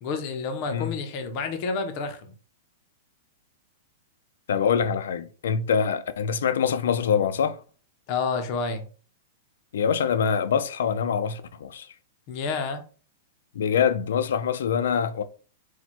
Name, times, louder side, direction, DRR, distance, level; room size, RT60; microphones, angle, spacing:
voice 1, 0.0-2.3 8.1-8.9 12.3-12.8, left 4 dB, 30° left, 0.6 m, -29 dB
voice 2, 4.5-7.6 9.7-11.9 13.5-15.2, left 7 dB, 75° left, 0.4 m, -24 dB
4.4 x 2.2 x 4.2 m
supercardioid pair, 180°, 0 cm